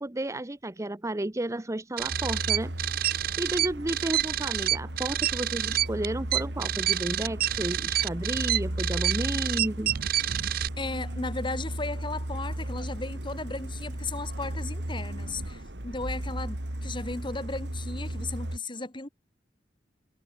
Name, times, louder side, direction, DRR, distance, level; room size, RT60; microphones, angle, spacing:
voice 1, 0.0-2.7 3.4-9.9, right 1 dB, 15° right, 0.7 m, -32 dB
sound 1, 2.0-10.7, right 13 dB, 55° right, 0.4 m, -28 dB
Truck, 2.1-18.6, right 1 dB, 70° right, 3.0 m, -35 dB
voice 2, 10.8-19.1, left 3 dB, 25° left, 2.2 m, -35 dB
head